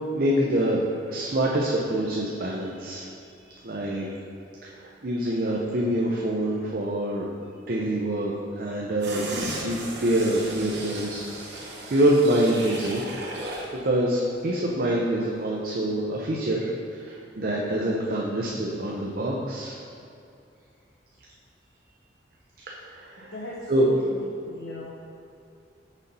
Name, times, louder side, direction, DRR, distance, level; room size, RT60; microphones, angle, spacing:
voice 1, 0.0-3.1 3.6-4.1 4.6-7.3 7.7-9.3 9.6-13.0 13.8-16.7 17.0-19.8 22.7-23.3 23.7-23.9, right 1 dB, 50° right, -3 dB, 0.6 m, -26 dB
sound 1, 9.0-13.8 14.1-14.2, right 2 dB, 70° right, 1.0 m, -35 dB
voice 2, 23.2-24.9, left 1 dB, 70° left, -5 dB, 0.8 m, -37 dB
6.2 x 4.1 x 5.4 m, 2.5 s
head